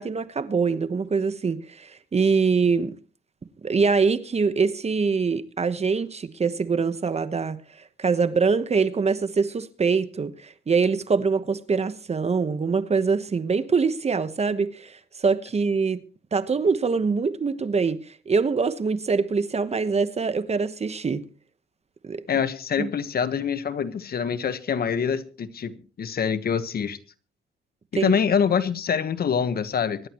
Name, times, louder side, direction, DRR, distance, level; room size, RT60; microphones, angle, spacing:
voice 1, 0.0-3.0 3.6-7.6 8.0-15.0 15.2-16.0 16.3-18.0 18.3-21.2 22.0-22.2 22.8-22.9 28.0-28.1, right 5 dB, 30° right, 1.1 m, -24 dB
voice 2, 22.3-27.0 27.9-30.1, left 7 dB, 50° left, 1.3 m, -25 dB
24.5 x 11.0 x 3.1 m
cardioid pair, 90°, 20 cm